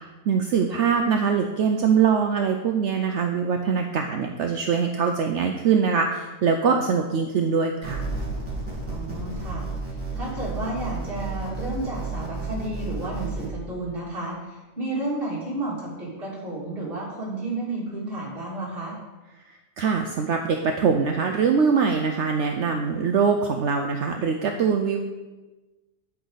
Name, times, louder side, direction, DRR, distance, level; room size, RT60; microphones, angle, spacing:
voice 1, 0.3-8.0 19.8-25.0, right 6 dB, 65° right, 4 dB, 0.9 m, -23 dB
sound 1, 7.8-13.5, right 3 dB, 10° right, 3.6 m, -32 dB
voice 2, 8.9-9.7 10.1-18.9, right 2 dB, 40° right, -7 dB, 3.2 m, -32 dB
9.3 x 8.7 x 4.0 m, 1.1 s
omnidirectional pair, 1.4 m